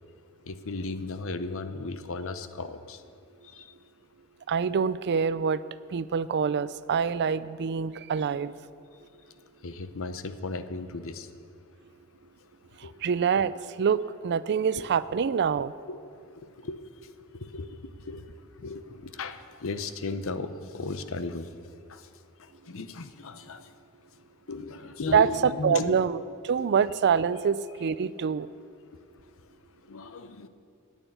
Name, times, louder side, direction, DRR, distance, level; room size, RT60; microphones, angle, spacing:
voice 1, 0.5-3.0 3.5-3.7 9.6-11.3 12.8-12.9 15.3-15.4 15.9-16.0 16.4-16.8 17.3-17.7 18.0-21.5 21.9-22.1 22.7-23.7 24.5-26.0 29.9-30.5, left 3 dB, 65° left, 10 dB, 0.8 m, -36 dB
voice 2, 4.5-5.6 5.9-8.5 12.8-15.7 25.1-28.5, right 6 dB, 50° right, 16 dB, 0.4 m, -26 dB
11.0 x 9.1 x 9.1 m, 2.3 s
head